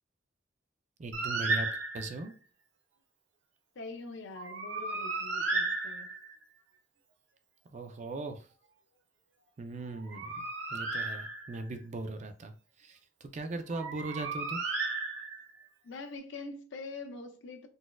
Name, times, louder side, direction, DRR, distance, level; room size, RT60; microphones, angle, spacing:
voice 1, 1.0-1.7 1.9-2.4 7.7-8.4 9.6-12.5 12.8-14.6, right 2 dB, 40° right, 0.4 m, -39 dB
Bird, 1.1-2.3 4.4-6.4 9.9-11.7 13.7-15.6, right 3 dB, 80° right, 0.7 m, -34 dB
voice 2, 3.8-6.1 15.8-17.7, left 3 dB, 75° left, 0.5 m, -44 dB
3.9 x 2.4 x 2.2 m
head